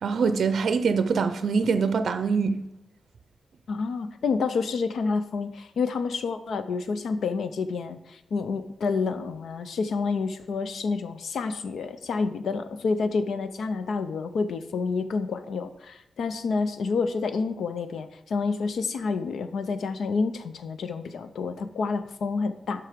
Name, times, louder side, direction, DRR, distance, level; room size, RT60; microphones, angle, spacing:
voice 1, 0.0-2.6, right 5 dB, 65° right, 0.5 m, -24 dB
voice 2, 3.7-22.8, left 4 dB, 75° left, 0.5 m, -29 dB
7.5 x 5.9 x 5.1 m
wide cardioid pair, 140°, 0 cm